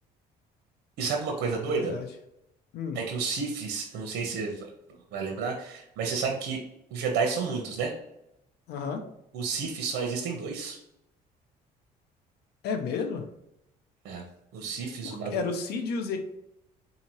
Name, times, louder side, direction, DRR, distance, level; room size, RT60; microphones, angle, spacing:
voice 1, 1.0-1.9 2.9-4.7 5.1-6.6 6.9-7.9 9.3-10.8 14.0-14.2 14.5-15.4, right 5 dB, 80° right, 2 dB, 0.8 m, -31 dB
voice 2, 1.7-2.1 2.7-3.0 8.7-9.1 12.6-13.2 15.0-16.2, left 5 dB, 70° left, 6 dB, 0.7 m, -32 dB
4.1 x 2.8 x 3.0 m, 0.82 s
cardioid pair, 110°, 17 cm